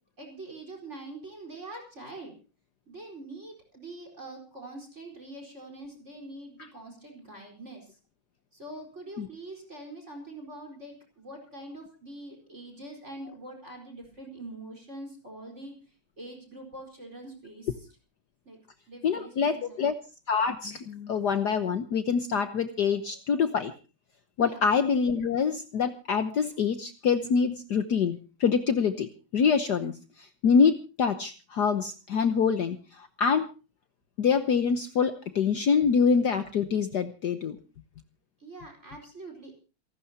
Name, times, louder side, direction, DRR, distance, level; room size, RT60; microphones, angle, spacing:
voice 1, 0.2-2.3 2.9-8.0 8.5-17.9 18.4-18.6 18.9-19.8 24.4-24.6 38.4-39.6, right 2 dB, 35° right, 4 dB, 4.9 m, -44 dB
voice 2, 19.0-19.9 20.3-23.7 24.4-33.5 34.2-37.6, left 6 dB, 60° left, 9 dB, 1.5 m, -25 dB
28.0 x 12.5 x 2.8 m, 0.33 s
omnidirectional pair, 2.3 m